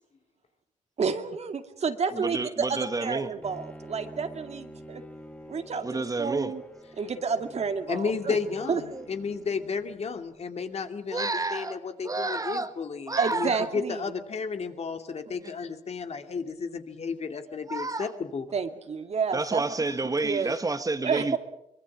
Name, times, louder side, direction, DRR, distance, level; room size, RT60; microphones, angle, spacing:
voice 1, 1.0-5.0 5.5-6.6 7.0-8.4 8.6-8.8 13.2-14.0 18.5-19.6 20.2-20.5 21.0-21.4, right 5 dB, 55° right, 2.3 m, -30 dB
voice 2, 2.1-3.3 5.8-6.5 8.6-9.1 11.1-11.8 12.0-12.7 13.1-13.7 15.4-15.5 17.7-18.1 19.3-21.4, right 3 dB, 25° right, 1.6 m, -30 dB
Bowed string instrument, 3.4-10.5, equal, 10° left, 2.8 m, -48 dB
voice 3, 7.9-18.4, left 5 dB, 55° left, 2.5 m, -33 dB
24.0 x 22.0 x 7.4 m
cardioid pair, 80°, 13 cm